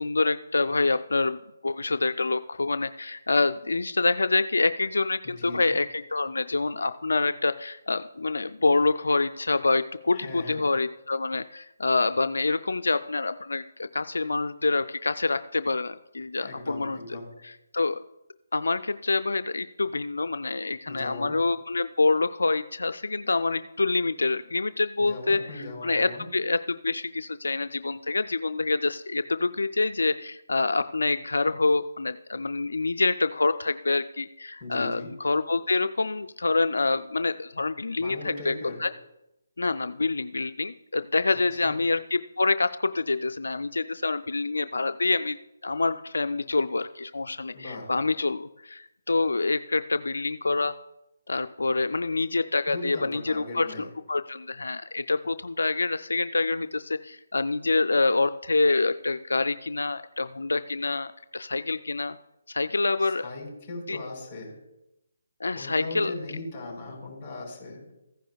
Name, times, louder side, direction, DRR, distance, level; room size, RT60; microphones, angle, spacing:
voice 1, 0.0-17.0 17.4-18.0 18.5-38.5 38.8-38.9 39.6-45.4 45.6-50.7 51.3-62.2 62.5-63.3 63.9-64.0 65.4-66.1, left 3 dB, 80° left, 11 dB, 0.3 m, -26 dB
voice 2, 5.2-5.8 10.1-10.6 16.4-17.3 20.9-21.3 25.0-26.3 34.6-35.1 38.0-38.8 41.6-41.7 47.5-47.9 52.7-53.9 63.0-64.6 65.5-67.9, left 2 dB, 20° left, -2 dB, 4.4 m, -38 dB
15.0 x 10.0 x 2.3 m, 0.89 s
figure-of-eight pair, 155°, 0 cm